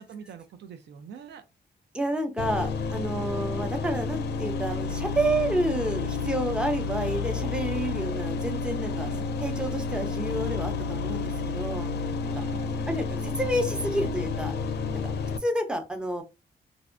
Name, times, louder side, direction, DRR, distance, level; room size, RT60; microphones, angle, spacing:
voice 1, 0.0-1.4 8.9-9.3 12.2-12.7, right 7 dB, 80° right, 0.4 m, -44 dB
voice 2, 1.9-9.1 9.4-11.9 12.3-12.4 12.9-14.5 15.4-16.2, right 1 dB, 5° right, 0.6 m, -29 dB
sound 1, 2.4-15.4, left 4 dB, 75° left, 0.4 m, -30 dB
2.5 x 2.0 x 2.5 m
cardioid pair, 85°, 17 cm